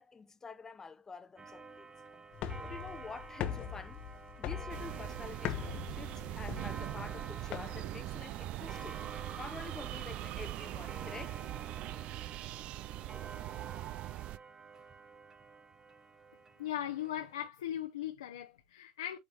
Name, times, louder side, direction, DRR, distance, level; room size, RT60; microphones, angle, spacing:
voice 1, 0.0-1.9 2.6-4.0 4.4-9.0 9.3-11.4, left 4 dB, 20° left, 0.8 m, -48 dB
Clock, 1.4-17.5, right 4 dB, 25° right, 1.0 m, -50 dB
sound 1, 2.3-8.0, left 10 dB, 50° left, 0.9 m, -41 dB
sound 2, 4.7-14.4, right 16 dB, 50° right, 0.4 m, -41 dB
voice 2, 16.6-19.2, left 11 dB, 75° left, 0.8 m, -38 dB
8.7 x 3.6 x 3.0 m
hypercardioid pair, 75°, 2 cm